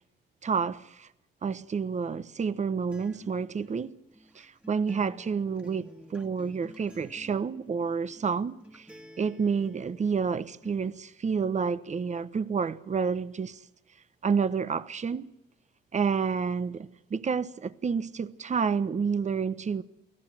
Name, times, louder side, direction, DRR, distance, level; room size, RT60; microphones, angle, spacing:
voice 1, 0.4-1.1 1.4-4.0 4.3-8.9 9.2-13.6 14.2-15.3 15.9-19.8, right 5 dB, 35° right, 1.1 m, -29 dB
Acoustic guitar, 2.9-10.9, equal, 5° right, 2.0 m, -52 dB
29.0 x 18.0 x 7.6 m
cardioid pair, 90°, 20 cm